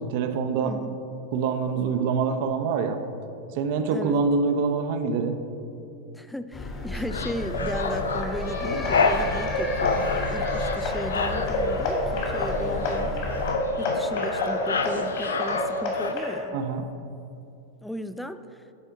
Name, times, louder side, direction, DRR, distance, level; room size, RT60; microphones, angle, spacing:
voice 1, 0.1-0.8 1.3-3.0 3.5-5.4 16.5-16.9, right 5 dB, 50° right, 8 dB, 0.6 m, -25 dB
voice 2, 0.6-1.0 3.9-4.2 6.1-13.5 13.8-16.6 17.8-18.6, equal, ahead, 11 dB, 0.3 m, -36 dB
sound 1, 6.5-13.5, left 2 dB, 20° left, 1.1 m, -33 dB
sound 2, 6.9-16.1, left 4 dB, 70° left, 0.5 m, -30 dB
sound 3, 7.3-16.4, left 1 dB, 50° left, 2.0 m, -29 dB
12.5 x 4.4 x 4.6 m, 2.7 s
figure-of-eight pair, 90°, 0 cm